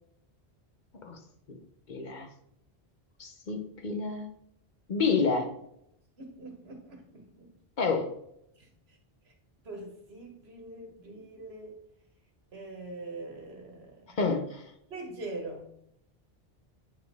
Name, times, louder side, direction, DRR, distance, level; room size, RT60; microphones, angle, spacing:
voice 1, 1.9-2.3 3.2-4.3 4.9-5.5 7.8-8.1 14.2-14.6, left 4 dB, 50° left, 5 dB, 0.8 m, -29 dB
voice 2, 6.2-7.5 8.6-8.7 9.6-11.8 12.5-14.2 14.9-15.7, right 2 dB, 80° right, 3 dB, 1.6 m, -43 dB
8.8 x 4.2 x 3.5 m, 0.78 s
omnidirectional pair, 1.0 m